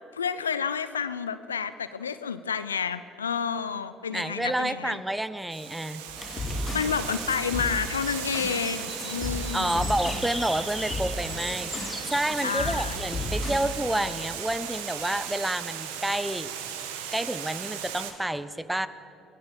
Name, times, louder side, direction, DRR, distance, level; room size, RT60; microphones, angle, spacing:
voice 1, 0.0-5.0 6.7-10.0 12.4-13.0, left 6 dB, 90° left, 13 dB, 0.6 m, -30 dB
voice 2, 4.1-6.0 9.5-16.5 17.1-18.9, right 1 dB, 10° right, 14 dB, 1.1 m, -29 dB
Water, 5.5-18.1, right 9 dB, 75° right, 1.6 m, -37 dB
sound 1, 6.1-8.7 9.0-10.4 10.7-12.0 12.4-13.8, left 2 dB, 40° left, 4.0 m, -34 dB
sound 2, 6.2-14.3, left 1 dB, 10° left, 2.6 m, -40 dB
24.0 x 18.0 x 7.0 m, 2.6 s
hypercardioid pair, 55°, 0 cm